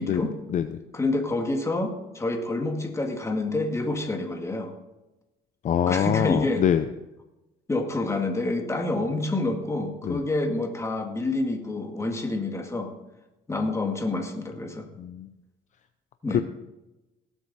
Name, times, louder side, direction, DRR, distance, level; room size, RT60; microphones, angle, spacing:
voice 1, 0.0-0.3 0.9-4.7 5.9-6.6 7.7-12.9 13.5-14.9 16.2-16.4, left 2 dB, 15° left, 4 dB, 2.0 m, -28 dB
voice 2, 5.6-6.8 10.0-10.2 15.0-15.3 16.3-16.4, left 9 dB, 45° left, 9 dB, 0.6 m, -24 dB
18.0 x 8.0 x 4.2 m, 1.0 s
cardioid pair, 110°, 17 cm